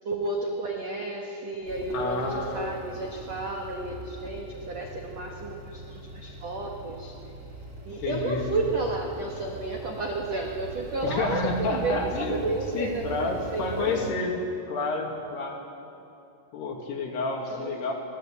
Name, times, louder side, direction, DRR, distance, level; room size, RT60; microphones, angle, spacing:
voice 1, 0.0-7.1 7.8-14.2 17.4-17.7, right 3 dB, 70° right, 0 dB, 1.5 m, -32 dB
sound 1, 1.6-14.1, equal, 20° right, 3.0 m, -42 dB
voice 2, 1.9-2.8 8.0-8.4 11.0-12.4 12.7-14.3 14.7-15.6 16.5-17.9, left 3 dB, 60° left, 1 dB, 4.1 m, -29 dB
24.0 x 17.5 x 8.6 m, 2.7 s
omnidirectional pair, 5.8 m